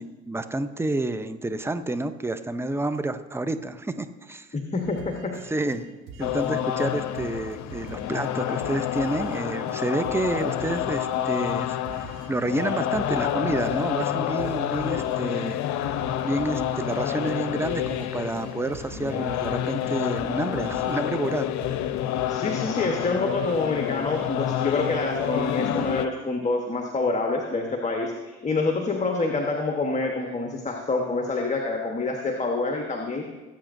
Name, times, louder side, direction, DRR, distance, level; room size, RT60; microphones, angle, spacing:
voice 1, 0.0-4.5 5.4-5.9 6.2-15.6 16.2-21.5, right 2 dB, 5° right, 10 dB, 0.7 m, -29 dB
voice 2, 4.5-5.4 22.3-33.3, left 3 dB, 20° left, 2 dB, 1.3 m, -27 dB
sound 1, 4.8-6.5 6.8-9.4 9.7-9.8 10.0-12.3 12.6-15.2 15.5-15.6 15.8-18.1 18.4-21.0 21.2-21.4 21.6-22.3, right 5 dB, 70° right, 2.0 m, -45 dB
sound 2, 6.2-26.1, left 11 dB, 55° left, 0.8 m, -28 dB
19.0 x 8.5 x 2.7 m, 1.2 s
hypercardioid pair, 65°, 34 cm